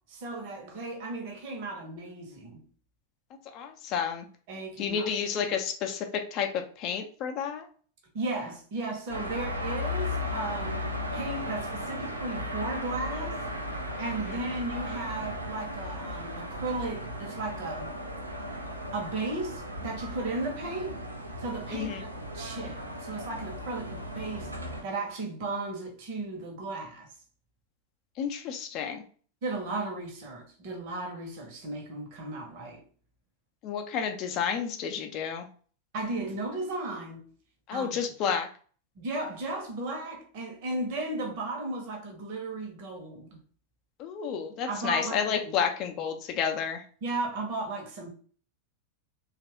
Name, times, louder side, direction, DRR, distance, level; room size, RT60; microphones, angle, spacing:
voice 1, 0.1-2.6 4.5-5.1 8.1-10.8 11.1-13.4 14.0-17.9 18.9-21.0 21.4-24.5 24.8-27.1 29.4-32.8 35.9-37.3 37.7-38.0 39.0-43.4 44.7-45.2 47.0-48.1, right 2 dB, 45° right, 1.0 m, -35 dB
voice 2, 3.5-4.3 4.8-7.7 14.2-14.3 21.7-22.0 28.2-29.0 33.6-35.5 37.7-38.5 44.0-46.8, left 7 dB, 40° left, 0.6 m, -31 dB
sound 1, 9.1-24.8, left 1 dB, 85° right, 0.5 m, -36 dB
3.0 x 2.4 x 2.9 m
figure-of-eight pair, 90°, 0 cm